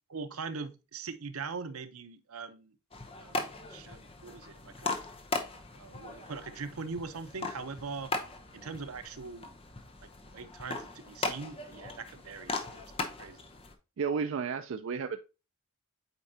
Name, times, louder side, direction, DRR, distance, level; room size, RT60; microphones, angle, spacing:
voice 1, 0.1-2.7 3.2-5.0 5.7-8.1 8.5-9.5 10.0-13.4, right 4 dB, 85° right, 0.7 m, -42 dB
sound 1, 2.9-13.7, left 3 dB, 25° left, 0.7 m, -39 dB
voice 2, 14.0-15.2, right 5 dB, 65° right, 0.4 m, -32 dB
8.2 x 4.4 x 2.7 m
head